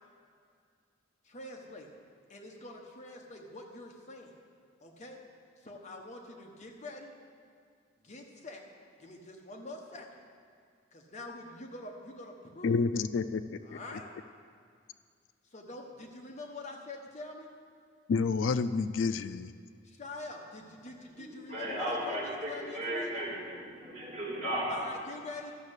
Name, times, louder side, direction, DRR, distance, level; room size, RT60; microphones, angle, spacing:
voice 1, 1.2-1.9 2.3-4.3 4.8-5.2 5.6-7.1 8.0-8.6 9.0-10.1 10.9-12.8 13.6-14.1 15.5-17.5 19.8-23.1 24.7-25.5, left 2 dB, 40° left, 1 dB, 1.1 m, -45 dB
voice 2, 12.6-13.8 18.1-19.5, left 4 dB, 70° left, 12 dB, 0.4 m, -29 dB
voice 3, 21.5-24.7, right 1 dB, 35° right, -5 dB, 3.5 m, -35 dB
12.0 x 6.5 x 8.1 m, 2.2 s
head